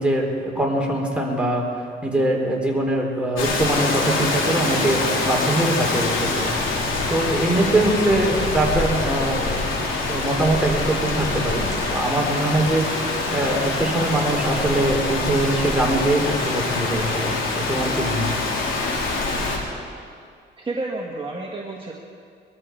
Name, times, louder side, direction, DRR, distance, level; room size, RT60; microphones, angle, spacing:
voice 1, 0.0-1.7 2.0-6.5 7.1-9.6 10.1-18.4, right 1 dB, 5° right, -1 dB, 3.6 m, -22 dB
Rain, 3.3-19.6, left 3 dB, 75° left, 3.5 m, -25 dB
voice 2, 20.6-21.9, right 2 dB, 25° right, -1 dB, 1.6 m, -30 dB
22.5 x 13.5 x 4.6 m, 2.2 s
cardioid pair, 90°, 20 cm